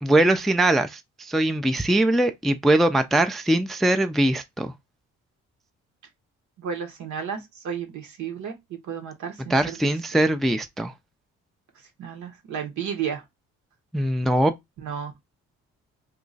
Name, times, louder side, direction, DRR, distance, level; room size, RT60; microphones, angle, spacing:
voice 1, 0.0-4.7 9.5-10.9 13.9-14.5, right 1 dB, ahead, 0.3 m, -21 dB
voice 2, 6.6-7.4 7.6-9.9 12.0-13.2 14.8-15.1, right 7 dB, 75° right, 1.2 m, -32 dB
2.9 x 2.3 x 3.9 m
cardioid pair, 90°, 30 cm